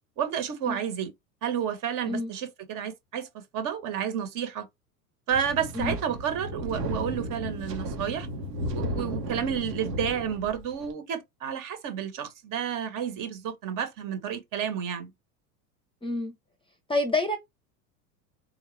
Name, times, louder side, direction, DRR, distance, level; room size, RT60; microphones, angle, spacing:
voice 1, 0.2-1.1 1.4-4.7 5.3-8.3 8.7-15.1, right 8 dB, 40° right, 1.3 m, -31 dB
Wind, 5.3-10.9, equal, 80° right, 1.4 m, -34 dB
voice 2, 16.0-16.3 16.9-17.4, left 2 dB, 10° left, 0.7 m, -27 dB
4.0 x 2.4 x 3.2 m
hypercardioid pair, 100°, 47 cm